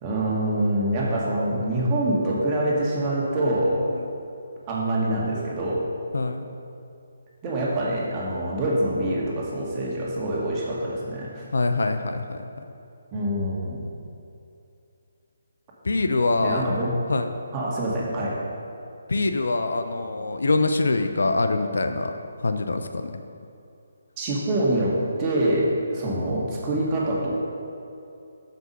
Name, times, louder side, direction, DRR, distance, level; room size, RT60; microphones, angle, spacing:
voice 1, 0.0-3.9 4.7-5.9 7.4-11.4 13.1-13.8 16.4-17.0 17.5-18.5 24.2-27.4, right 1 dB, 25° right, -4 dB, 1.8 m, -25 dB
voice 2, 6.1-6.5 11.5-12.4 15.8-16.7 17.1-17.3 19.1-22.1 22.4-23.0, left 3 dB, 65° left, 7 dB, 0.6 m, -24 dB
8.0 x 6.9 x 5.5 m, 2.6 s
figure-of-eight pair, 140°, 0 cm